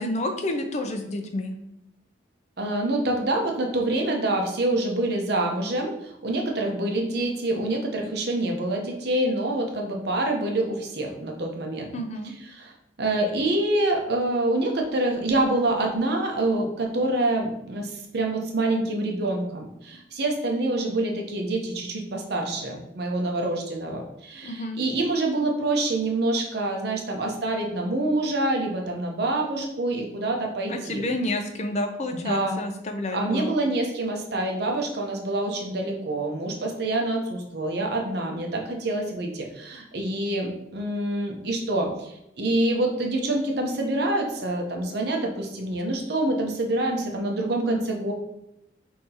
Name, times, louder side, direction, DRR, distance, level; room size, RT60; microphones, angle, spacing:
voice 1, 0.0-1.5 11.9-12.3 24.4-24.8 30.7-33.5, left 1 dB, 35° left, 6 dB, 0.5 m, -29 dB
voice 2, 2.6-11.9 12.5-12.7 13.0-31.0 32.1-32.6 33.1-48.1, right 2 dB, 60° right, 1 dB, 0.8 m, -26 dB
5.7 x 2.8 x 2.8 m, 0.86 s
head